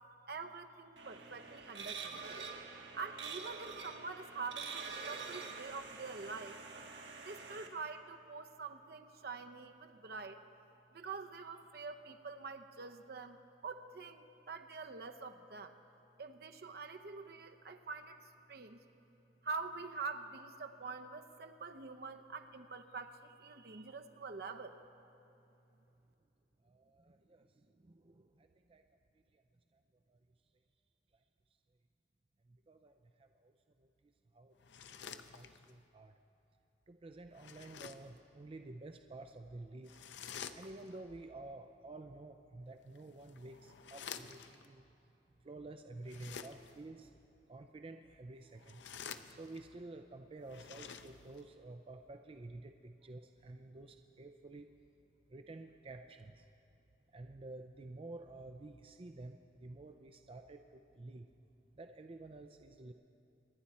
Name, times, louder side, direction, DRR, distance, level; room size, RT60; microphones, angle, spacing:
voice 1, 0.3-2.5 2.9-6.6 7.2-10.4 10.9-13.4 13.6-15.7 16.2-18.8 19.4-24.8, right 4 dB, 60° right, 7 dB, 0.7 m, -46 dB
sound 1, 1.0-7.7, right 5 dB, 85° right, 1.3 m, -46 dB
voice 2, 26.7-27.5 27.8-28.8 32.7-32.9 33.2-33.5 34.3-34.5 35.1-36.1 36.9-39.9 40.6-44.8 45.4-47.1 47.5-48.8 49.3-54.7 55.3-56.4 57.1-61.3 61.8-62.9, right 2 dB, 30° right, 6 dB, 0.4 m, -51 dB
sound 2, 34.6-35.8 37.3-38.2 39.8-41.0 42.8-44.7 46.0-46.9 48.5-49.7 50.4-51.5, left 7 dB, 90° left, 0.6 m, -50 dB
25.0 x 10.5 x 4.3 m, 2.8 s
head